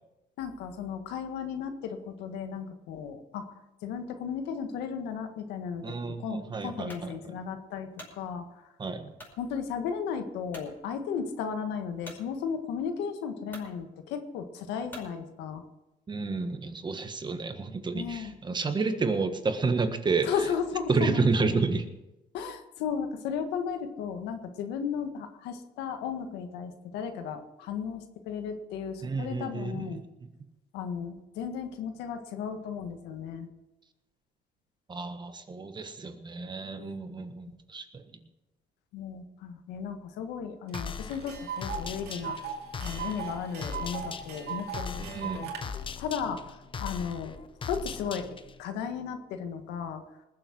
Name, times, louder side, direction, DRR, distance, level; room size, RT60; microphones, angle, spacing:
voice 1, 0.4-3.5 3.8-8.5 9.4-15.6 17.9-18.3 20.3-21.2 22.3-30.0 30.7-33.5 36.8-37.0 38.9-42.4 42.8-45.5 46.0-47.4 47.6-48.3 48.6-50.0, left 7 dB, 90° left, 7 dB, 1.7 m, -35 dB
voice 2, 5.8-7.4 8.8-9.1 16.1-20.3 20.9-21.8 29.0-30.3 34.9-38.2 45.0-45.5, right 4 dB, 25° right, 8 dB, 1.5 m, -30 dB
sound 1, 6.9-7.1 7.7-8.2 9.2-9.4 9.9-10.0 10.5-10.7 12.0-12.2 13.0-13.1 13.5-13.7 14.9-15.1, left 1 dB, 10° left, 5.3 m, -46 dB
sound 2, 40.7-48.6, left 6 dB, 30° left, 0.9 m, -40 dB
Tick, 40.7-40.8 41.1-45.6, right 7 dB, 75° right, 2.4 m, -38 dB
20.0 x 7.8 x 6.2 m, 0.96 s
cardioid pair, 110°, 17 cm